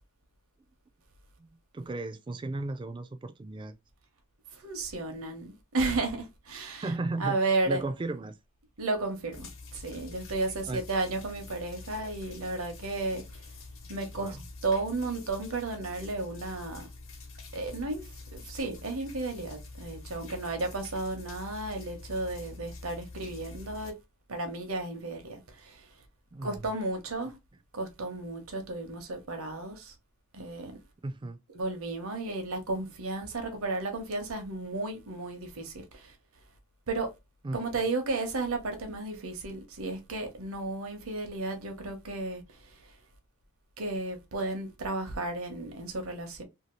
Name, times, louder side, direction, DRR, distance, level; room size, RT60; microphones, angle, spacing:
voice 1, 1.4-3.8 6.8-7.4 7.7-8.4 10.7-10.8 14.1-14.5 26.3-26.6 31.0-31.4 37.4-37.8, right 2 dB, 20° right, 0.3 m, -35 dB
voice 2, 4.5-6.8 7.2-7.8 8.8-13.2 13.9-14.4 14.6-16.9 17.5-18.0 18.3-23.9 24.3-25.9 26.4-27.4 27.7-29.9 30.3-30.7 31.5-36.1 36.9-37.1 37.5-42.4 43.8-46.4, right 2 dB, 80° right, 0.9 m, -33 dB
sound 1, 9.3-23.9, left 3 dB, 65° left, 0.9 m, -46 dB
2.8 x 2.7 x 3.0 m
head